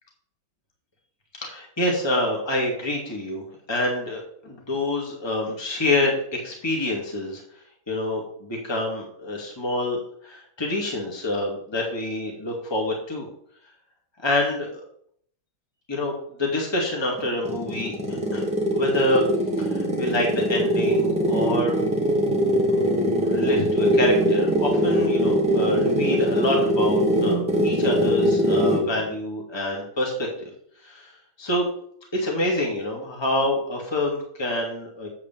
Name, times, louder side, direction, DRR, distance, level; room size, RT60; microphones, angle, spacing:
voice 1, 1.4-7.4 7.9-13.3 14.2-14.8 15.9-16.1 16.4-18.5 18.7-19.2 19.6-21.7 22.7-22.8 23.2-30.5 30.8-31.1 31.4-31.7 32.1-35.1, left 1 dB, 10° left, -1 dB, 2.0 m, -27 dB
sound 1, 17.2-28.9, equal, 5° right, 1.9 m, -22 dB
8.4 x 4.9 x 7.4 m, 0.65 s
omnidirectional pair, 2.3 m